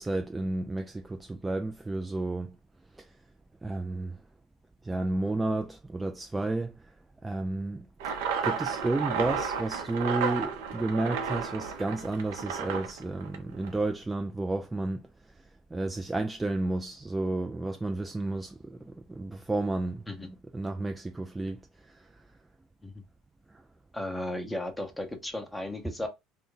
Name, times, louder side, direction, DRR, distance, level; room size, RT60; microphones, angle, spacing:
voice 1, 0.0-2.6 3.0-3.1 3.6-4.2 4.8-6.8 7.2-7.9 8.4-15.0 15.7-22.1, right 2 dB, 15° right, 0.4 m, -32 dB
sound 1, 8.0-13.8, right 6 dB, 80° right, 0.7 m, -33 dB
voice 2, 23.9-26.1, left 1 dB, 10° left, 0.9 m, -35 dB
2.5 x 2.2 x 3.8 m
supercardioid pair, 85°, 0 cm